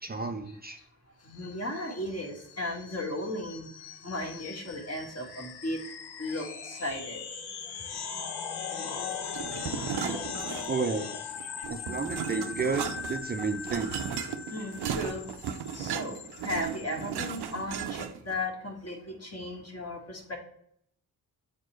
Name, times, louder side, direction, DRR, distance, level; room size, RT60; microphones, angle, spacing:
voice 1, 0.0-0.8 10.0-10.2 10.7-11.1 11.7-14.0, right 4 dB, 25° right, 5 dB, 0.5 m, -32 dB
sound 1, 1.3-17.5, left 6 dB, 85° left, 0.8 m, -40 dB
voice 2, 1.3-3.7 4.0-5.8 6.2-7.2 11.4-11.5 14.5-15.3 15.7-16.2 16.4-20.4, left 1 dB, 40° left, 2 dB, 1.7 m, -35 dB
sound 2, 9.3-11.0 11.3-18.3, right 8 dB, 85° right, 0.6 m, -36 dB
7.1 x 4.5 x 3.1 m, 0.69 s
cardioid pair, 70°, 38 cm